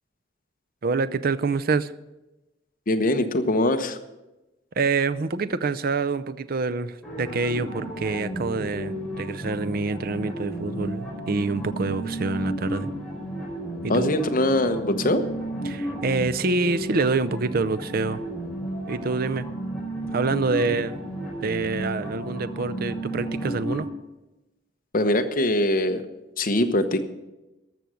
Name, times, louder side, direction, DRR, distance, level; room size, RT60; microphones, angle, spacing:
voice 1, 0.8-1.9 4.8-12.9 13.8-14.1 15.6-18.2 18.9-19.5 20.1-21.0 21.4-23.9, right 3 dB, 55° right, 12 dB, 0.5 m, -26 dB
voice 2, 2.9-4.0 13.9-15.2 24.9-26.0 26.4-27.0, left 1 dB, 50° left, 6 dB, 1.1 m, -22 dB
sound 1, 7.0-23.8, right 1 dB, 5° left, 4.6 m, -33 dB
14.0 x 6.3 x 9.3 m, 1.0 s
head